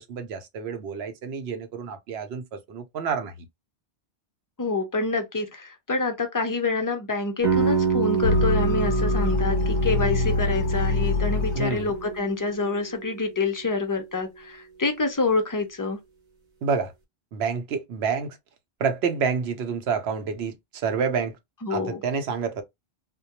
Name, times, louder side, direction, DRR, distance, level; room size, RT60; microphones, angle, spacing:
voice 1, 0.0-3.3 11.5-11.9 16.6-16.9 17.3-18.4 18.8-21.4 21.7-22.6, right 5 dB, 80° right, 0.9 m, -28 dB
voice 2, 4.6-16.0 21.6-22.0, left 3 dB, 35° left, 0.3 m, -27 dB
sound 1, 7.4-13.2, right 6 dB, 50° right, 0.9 m, -27 dB
sound 2, 8.2-12.0, left 4 dB, 90° left, 0.8 m, -25 dB
2.2 x 2.1 x 2.8 m
omnidirectional pair, 1.1 m